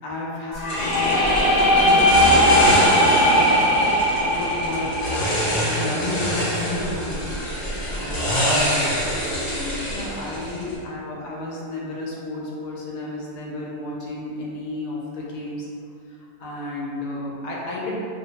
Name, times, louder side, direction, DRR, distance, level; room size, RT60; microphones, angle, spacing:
voice 1, 0.0-15.7 16.1-17.9, left 2 dB, 85° left, -4 dB, 1.2 m, -32 dB
sound 1, 0.5-6.4, equal, 60° left, 0.8 m, -19 dB
sound 2, 0.7-10.8, equal, 45° left, 1.0 m, -25 dB
2.8 x 2.1 x 2.8 m, 2.5 s
omnidirectional pair, 1.7 m